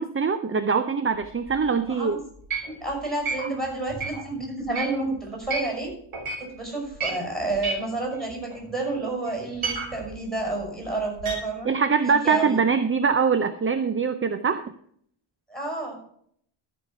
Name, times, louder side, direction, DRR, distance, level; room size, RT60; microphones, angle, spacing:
voice 1, 0.0-2.2 11.7-14.7, right 5 dB, 25° right, 11 dB, 0.5 m, -23 dB
sound 1, 1.1-1.8 2.3-5.8 6.1-6.5 6.8-9.0 9.3-11.3, right 4 dB, 75° right, 2.9 m, -32 dB
voice 2, 1.8-2.2 2.6-5.9 6.4-11.7 12.0-12.6 15.5-16.0, right 2 dB, ahead, 0 dB, 5.7 m, -30 dB
13.5 x 5.3 x 5.7 m, 0.64 s
wide cardioid pair, 105°, 50 cm